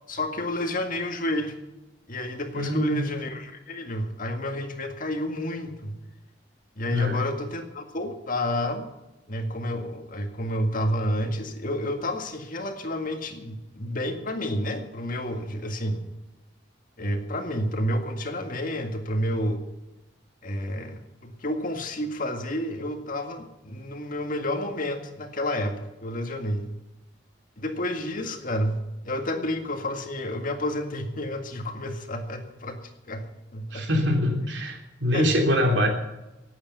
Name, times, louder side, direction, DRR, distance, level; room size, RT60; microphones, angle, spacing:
voice 1, 0.1-1.5 2.1-6.0 6.8-8.8 9.3-16.0 17.0-19.6 20.4-26.7 27.6-32.8 33.1-33.9 35.1-35.5, left 1 dB, 50° left, 5 dB, 2.0 m, -30 dB
voice 2, 2.5-3.0 6.9-7.2 33.7-35.9, equal, 75° right, 4 dB, 3.1 m, -24 dB
18.5 x 8.8 x 6.9 m, 0.97 s
head